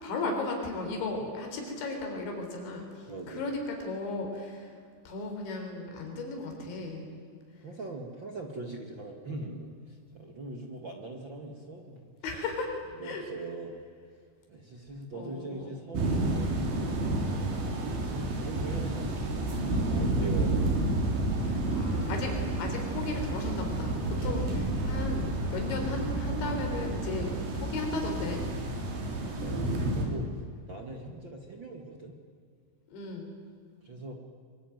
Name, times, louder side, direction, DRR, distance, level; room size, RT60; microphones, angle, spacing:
voice 1, 0.0-4.7 5.1-7.1 12.2-12.7 13.0-13.2 15.1-15.7 21.4-28.4 32.9-33.3, left 3 dB, 85° left, 3 dB, 6.2 m, -35 dB
voice 2, 3.1-3.5 7.6-12.1 12.9-13.8 14.5-17.5 17.8-20.7 28.9-32.2 33.8-34.1, right 2 dB, 40° right, 3 dB, 1.9 m, -42 dB
sound 1, 15.9-30.0, right 2 dB, 75° right, 5.9 m, -30 dB
24.0 x 24.0 x 9.3 m, 2.2 s
omnidirectional pair, 5.1 m